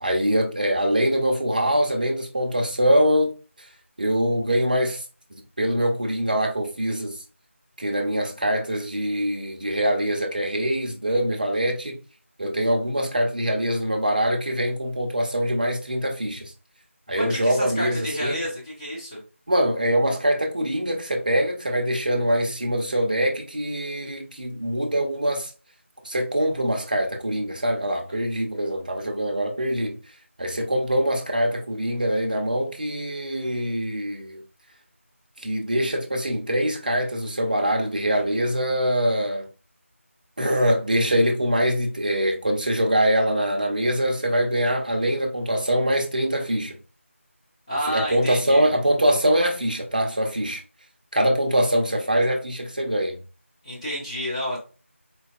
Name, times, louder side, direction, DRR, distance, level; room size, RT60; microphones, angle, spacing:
voice 1, 0.0-3.3 3.6-3.7 4.0-5.0 5.6-7.2 7.8-12.0 12.4-16.5 17.1-18.4 19.5-25.5 26.0-29.9 30.4-34.4 35.4-39.5 40.4-46.7 47.8-50.6 51.1-53.2, equal, 35° right, 0.7 m, -23 dB
voice 2, 17.1-19.2 47.7-48.7 53.6-54.6, equal, 20° left, 1.0 m, -30 dB
4.4 x 2.7 x 2.4 m
figure-of-eight pair, 170°, 7 cm